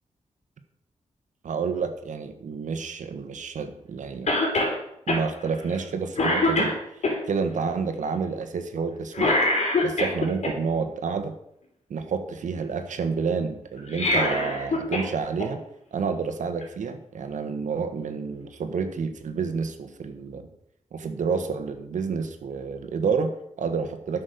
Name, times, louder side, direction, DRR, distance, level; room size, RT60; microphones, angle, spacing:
voice 1, 1.4-4.3 5.1-7.0 7.3-9.3 9.8-11.3 11.9-15.6 15.9-20.5 20.9-24.2, right 5 dB, 85° right, 7 dB, 1.4 m, -29 dB
Cough, 4.3-4.8 5.1-5.2 5.7-5.9 6.2-7.1 9.1-10.5 13.8-15.1 15.4-15.5 16.6-16.7, left 2 dB, 65° left, 3.7 m, -23 dB
12.0 x 6.3 x 6.7 m, 0.76 s
wide cardioid pair, 150°, 13 cm